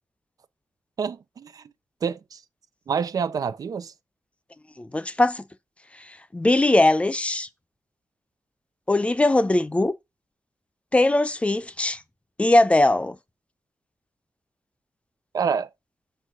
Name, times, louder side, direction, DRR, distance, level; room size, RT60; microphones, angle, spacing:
voice 1, 1.0-1.7 2.0-2.4 2.9-3.9 15.3-15.7, right 6 dB, 75° right, 0.6 m, -27 dB
voice 2, 4.8-5.4 6.1-7.5 8.9-9.9 10.9-12.0 12.4-13.2, left 2 dB, 20° left, 0.6 m, -20 dB
5.5 x 4.6 x 3.7 m
wide cardioid pair, 95°, 6 cm